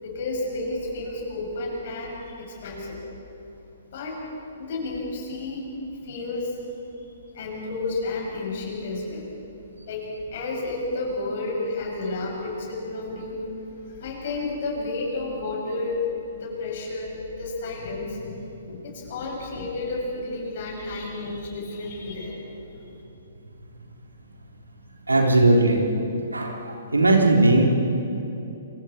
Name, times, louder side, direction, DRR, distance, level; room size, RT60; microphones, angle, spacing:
voice 1, 0.0-3.0 3.9-4.2 4.6-5.7 6.0-6.6 6.9-7.1 7.3-9.3 9.8-13.4 14.0-16.1 16.3-22.6 22.8-23.0, left 2 dB, 50° left, -1 dB, 7.0 m, -31 dB
voice 2, 25.1-25.8 26.3-27.6, right 2 dB, 85° right, 0 dB, 3.6 m, -18 dB
29.0 x 25.5 x 4.5 m, 2.9 s
figure-of-eight pair, 120°, 0 cm